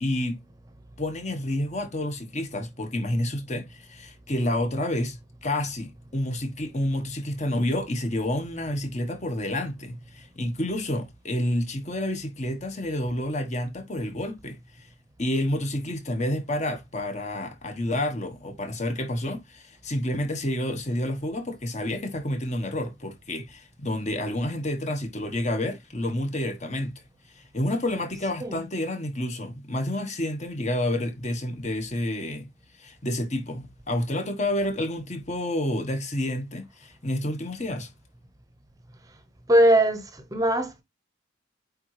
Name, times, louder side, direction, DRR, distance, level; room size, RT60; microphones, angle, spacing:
voice 1, 0.0-0.4 1.0-14.9 15.2-27.0 27.3-32.5 32.8-37.9, left 1 dB, 35° left, 1.3 m, -29 dB
voice 2, 39.5-40.8, right 1 dB, 20° right, 0.9 m, -21 dB
8.6 x 3.8 x 3.2 m
head